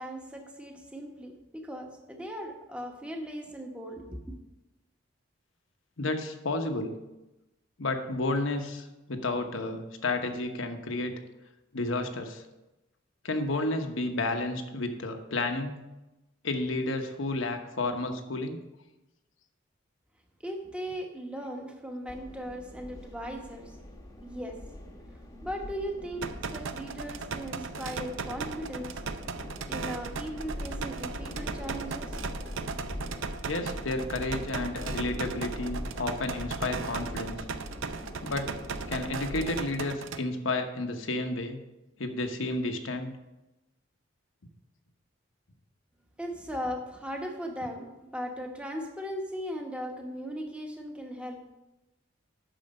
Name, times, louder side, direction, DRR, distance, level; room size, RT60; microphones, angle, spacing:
voice 1, 0.0-4.4 20.4-23.8 24.2-24.6 25.4-29.0 29.7-32.4 46.2-51.5, equal, 5° right, 2 dB, 1.1 m, -38 dB
voice 2, 6.0-7.0 7.8-11.2 11.7-12.4 13.2-15.8 16.4-18.6 33.4-37.4 38.2-38.5 38.9-41.6 42.0-43.1, left 2 dB, 75° left, 5 dB, 1.0 m, -31 dB
sound 1, 22.1-39.7, left 1 dB, 15° left, 1.0 m, -42 dB
sound 2, 26.2-40.2, right 5 dB, 70° right, 0.5 m, -37 dB
9.0 x 6.6 x 5.3 m, 1.0 s
head